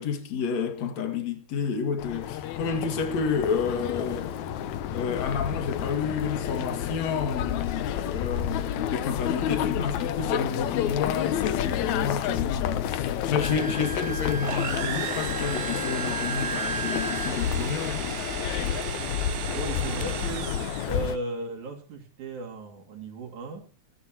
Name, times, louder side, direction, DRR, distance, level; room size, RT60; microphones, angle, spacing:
voice 1, 0.0-4.3 4.9-18.1, left 6 dB, 65° left, 3.3 m, -30 dB
sound 1, 2.0-21.2, left 10 dB, 80° left, 2.3 m, -30 dB
Wind instrument woodwind instrument, 13.4-17.3, right 5 dB, 30° left, 2.1 m, -35 dB
sound 2, 14.4-21.1, right 11 dB, 65° right, 1.4 m, -36 dB
voice 2, 19.5-20.6 20.9-23.7, right 2 dB, 90° right, 4.2 m, -36 dB
29.0 x 11.0 x 2.9 m
omnidirectional pair, 3.3 m